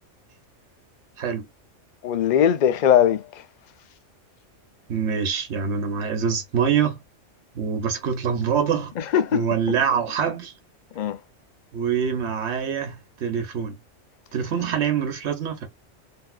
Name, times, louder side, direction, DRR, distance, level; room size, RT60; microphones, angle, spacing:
voice 1, 2.0-3.4 9.0-9.8 11.0-11.2, left 9 dB, 55° left, 0.5 m, -21 dB
voice 2, 4.9-7.0 7.5-8.9 9.3-10.5 11.7-13.8 14.3-15.7, right 7 dB, 65° right, 1.2 m, -25 dB
3.5 x 2.7 x 2.3 m
omnidirectional pair, 1.3 m